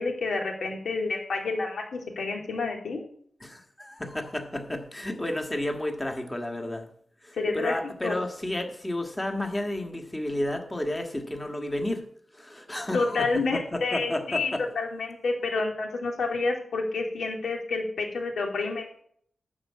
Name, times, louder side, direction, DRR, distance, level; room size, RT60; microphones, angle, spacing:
voice 1, 0.0-3.0 7.3-7.7 8.0-8.2 12.9-14.5 14.8-18.9, left 3 dB, 75° left, 1 dB, 2.7 m, -29 dB
voice 2, 3.4-6.9 7.2-12.0 12.3-14.6, left 1 dB, 15° left, 3 dB, 1.6 m, -32 dB
12.0 x 4.8 x 8.5 m, 0.62 s
wide cardioid pair, 130°, 0 cm